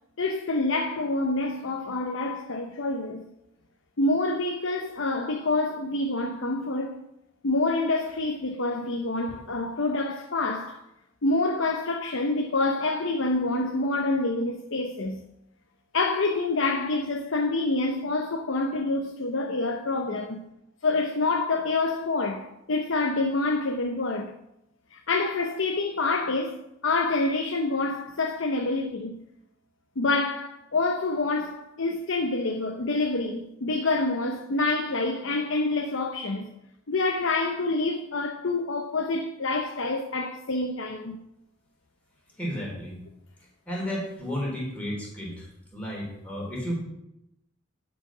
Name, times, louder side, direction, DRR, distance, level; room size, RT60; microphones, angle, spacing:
voice 1, 0.2-3.3 4.0-7.0 7.4-10.8 11.2-15.2 15.9-20.4 20.8-24.3 24.9-29.2 30.0-36.5 36.9-41.2, left 2 dB, 70° left, 0.8 m, -27 dB
voice 2, 42.4-43.0 43.6-45.5 45.7-46.8, equal, 5° left, 3.3 m, -32 dB
11.0 x 5.1 x 6.1 m
head